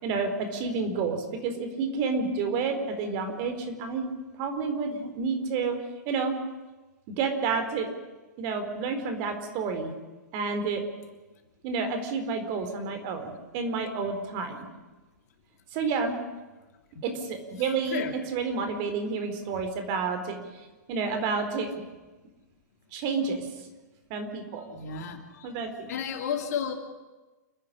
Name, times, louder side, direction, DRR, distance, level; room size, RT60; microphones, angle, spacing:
voice 1, 0.0-4.1 4.4-5.8 6.1-6.4 7.2-7.9 8.4-9.9 10.3-10.8 11.6-14.7 15.7-16.1 17.0-21.7 22.9-23.5 24.1-24.7 25.4-26.0, right 4 dB, 45° right, 7 dB, 4.0 m, -30 dB
voice 2, 24.7-25.5 25.9-26.7, left 7 dB, 60° left, 5 dB, 3.0 m, -32 dB
29.0 x 10.0 x 10.0 m, 1.2 s
hypercardioid pair, 115°, 10 cm